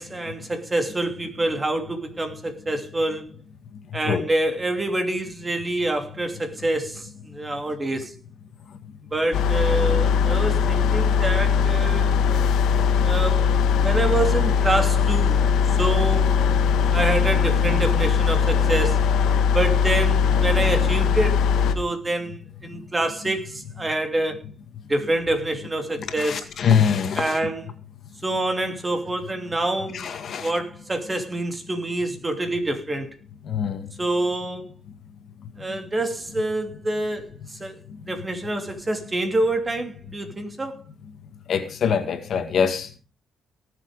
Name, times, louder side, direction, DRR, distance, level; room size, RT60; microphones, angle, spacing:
voice 1, 0.0-3.3 3.9-8.1 9.1-12.1 13.0-13.4 13.8-15.4 15.8-16.3 16.9-19.0 19.5-21.4 21.7-24.4 24.9-26.4 27.2-27.7 28.2-30.1 30.4-33.1 34.0-34.7 35.6-37.3 37.6-37.8 38.1-40.8, right 2 dB, 20° right, 2.9 m, -26 dB
sound 1, 9.3-21.7, left 6 dB, 80° left, 1.6 m, -20 dB
voice 2, 26.2-27.4 29.9-30.5 33.5-33.9 41.5-43.0, left 7 dB, 60° left, 2.0 m, -23 dB
18.5 x 7.5 x 5.1 m
cardioid pair, 90°, 0 cm